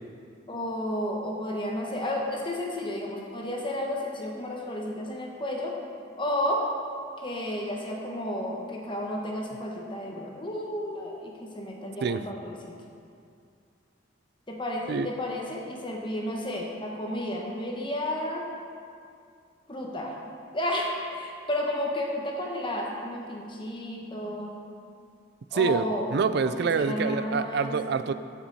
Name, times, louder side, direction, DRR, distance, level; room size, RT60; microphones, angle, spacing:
voice 1, 0.5-5.7 6.2-6.6 7.2-12.8 14.5-18.4 19.7-20.2 20.5-24.6 25.5-26.1 26.6-27.7, left 1 dB, 25° left, -1 dB, 1.2 m, -32 dB
voice 2, 25.5-25.8 26.1-28.1, right 5 dB, 60° right, 12 dB, 0.4 m, -26 dB
14.0 x 5.9 x 4.1 m, 2.3 s
head